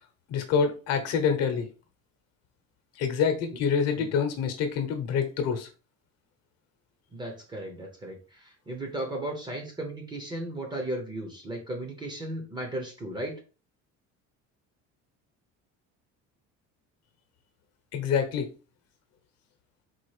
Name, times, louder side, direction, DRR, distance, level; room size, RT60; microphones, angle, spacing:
voice 1, 0.3-1.7 3.0-5.7 17.9-18.5, left 6 dB, 55° left, 1.0 m, -26 dB
voice 2, 7.1-13.4, right 1 dB, 15° right, 0.8 m, -35 dB
4.3 x 2.5 x 4.8 m
cardioid pair, 180°, 31 cm